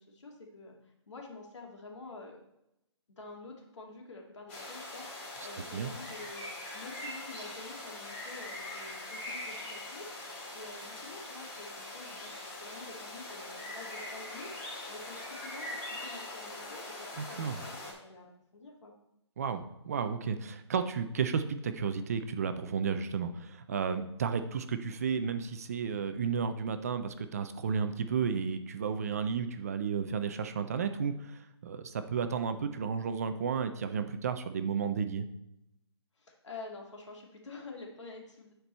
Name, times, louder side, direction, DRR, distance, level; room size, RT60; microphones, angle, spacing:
voice 1, 0.0-2.4 3.1-18.3 18.5-18.9 36.2-38.5, left 3 dB, 80° left, 0 dB, 2.3 m, -48 dB
sound 1, 4.5-17.9, left 2 dB, 25° left, 2.3 m, -42 dB
voice 2, 17.2-17.6 19.4-35.3, right 6 dB, 35° right, 9 dB, 0.4 m, -33 dB
10.0 x 4.5 x 4.2 m, 0.85 s
hypercardioid pair, 160°, 15 cm